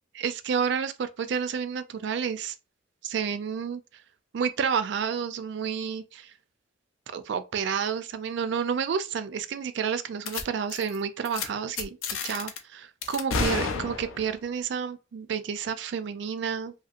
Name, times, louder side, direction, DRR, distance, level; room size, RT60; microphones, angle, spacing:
voice 1, 0.2-2.6 3.0-3.8 4.3-6.3 7.1-12.0 12.2-16.7, right 7 dB, 60° right, 0.3 m, -30 dB
sound 1, 10.3-10.4 10.7-11.0 11.3-11.5 11.8-12.6 13.0-14.3, left 4 dB, 80° left, 0.5 m, -30 dB
2.8 x 2.8 x 2.4 m
head